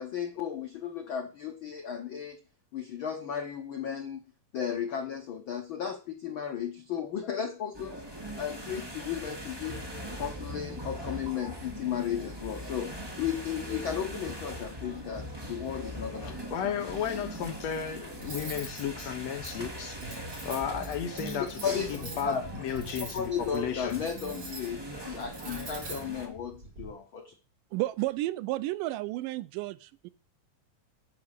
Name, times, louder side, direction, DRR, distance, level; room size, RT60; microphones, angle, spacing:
voice 1, 0.0-2.4 2.7-4.2 4.5-7.9 8.3-9.8 10.1-16.7 21.4-22.4 23.1-27.3, left 8 dB, 85° left, 1.1 m, -35 dB
sound 1, 7.7-26.3, right 1 dB, 10° right, 1.1 m, -41 dB
voice 2, 16.2-20.0 20.4-24.0, left 8 dB, 65° left, 1.9 m, -34 dB
Cutlery silverware, 18.2-26.9, right 2 dB, 50° right, 5.3 m, -45 dB
voice 3, 27.7-30.1, right 17 dB, 85° right, 2.3 m, -32 dB
10.5 x 4.9 x 8.1 m
omnidirectional pair, 3.7 m